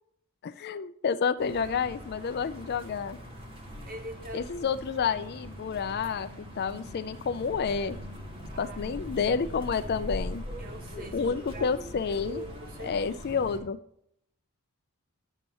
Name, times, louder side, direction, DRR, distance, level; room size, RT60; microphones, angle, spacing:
voice 1, 0.4-3.2 4.3-8.0 8.6-10.4 11.1-12.4 12.8-13.8, left 6 dB, 45° left, 12 dB, 0.4 m, -29 dB
sound 1, 1.4-13.6, equal, 25° right, 1.8 m, -41 dB
voice 2, 3.8-4.8 8.5-9.1 10.6-11.7 12.3-13.4, right 1 dB, 40° right, 5 dB, 1.3 m, -43 dB
11.0 x 7.0 x 3.0 m, 0.73 s
head